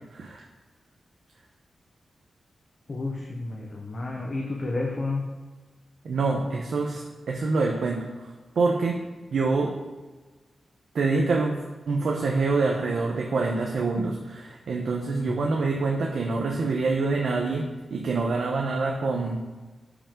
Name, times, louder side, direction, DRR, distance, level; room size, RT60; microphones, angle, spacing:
voice 1, 0.1-0.4 6.0-9.0 9.3-9.8 10.9-11.6 11.9-19.4, right 3 dB, 65° right, 0 dB, 0.9 m, -26 dB
voice 2, 2.9-5.2 15.1-15.5, left 2 dB, 30° left, 0 dB, 0.9 m, -31 dB
12.0 x 5.1 x 3.8 m, 1.2 s
wide cardioid pair, 175°, 0 cm